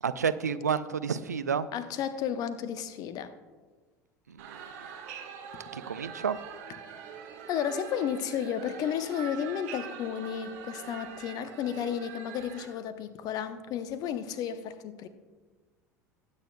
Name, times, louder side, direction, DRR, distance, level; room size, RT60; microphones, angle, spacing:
voice 1, 0.0-1.7 4.3-4.6 5.7-6.4, right 6 dB, 80° right, 0.5 m, -30 dB
voice 2, 1.7-3.3 6.9-7.0 7.5-15.1, left 8 dB, 45° left, 0.8 m, -33 dB
sound 1, 4.4-12.7, right 7 dB, 60° right, 1.7 m, -44 dB
20.0 x 9.0 x 2.3 m
figure-of-eight pair, 70°, 9 cm